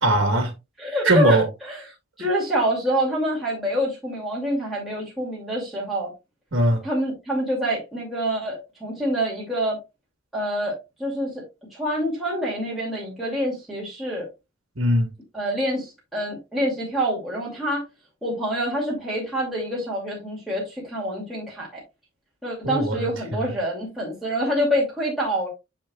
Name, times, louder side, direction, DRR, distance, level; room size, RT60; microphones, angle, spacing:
voice 1, 0.0-0.5 1.0-1.5 2.2-2.3 6.5-6.8 14.8-15.1 22.6-23.5, right 1 dB, 60° right, 1.4 m, -20 dB
voice 2, 0.8-1.4 1.7-1.8 2.2-6.1 6.8-9.8 10.3-10.7 11.0-11.3 11.7-14.3 15.3-17.8 18.2-21.7 22.4-25.5, equal, ahead, 2.4 m, -26 dB
7.3 x 6.7 x 2.3 m
head